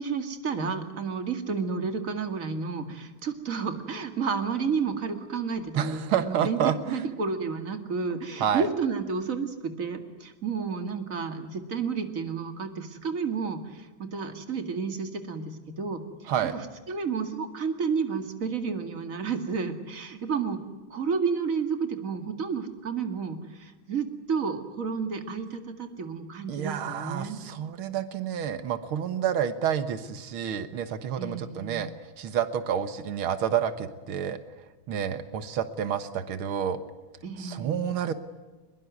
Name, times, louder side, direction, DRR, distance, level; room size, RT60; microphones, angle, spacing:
voice 1, 0.0-6.6 6.9-16.0 16.5-20.6 20.9-27.4 31.2-31.8 37.2-37.9, right 5 dB, 40° right, 7 dB, 2.5 m, -31 dB
voice 2, 5.8-7.0 8.4-8.7 16.3-16.5 26.5-34.4 34.9-36.8 37.4-38.1, right 9 dB, 90° right, 11 dB, 2.1 m, -29 dB
22.5 x 22.0 x 9.5 m, 1.2 s
omnidirectional pair, 2.2 m